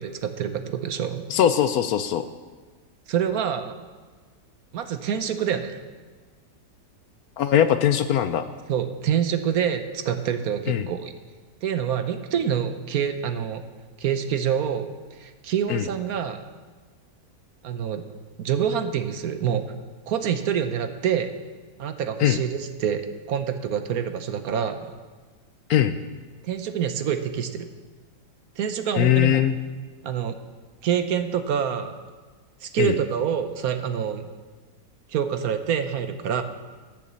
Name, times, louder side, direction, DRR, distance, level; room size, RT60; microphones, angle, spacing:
voice 1, 0.0-1.2 3.1-3.8 4.7-5.8 8.7-11.1 11.6-13.6 14.0-16.4 17.6-18.0 18.4-19.6 20.1-21.3 21.8-24.9 26.4-27.7 28.6-29.4 30.0-30.4 30.8-32.0 32.6-34.3 35.1-36.4, right 8 dB, 65° right, 8 dB, 1.1 m, -26 dB
voice 2, 1.3-2.2 7.4-8.5 10.7-10.9 15.7-15.9 22.2-22.4 25.7-26.0 29.0-29.6 32.8-33.0, left 10 dB, 70° left, 10 dB, 1.0 m, -21 dB
12.0 x 6.9 x 7.5 m, 1.4 s
omnidirectional pair, 1.8 m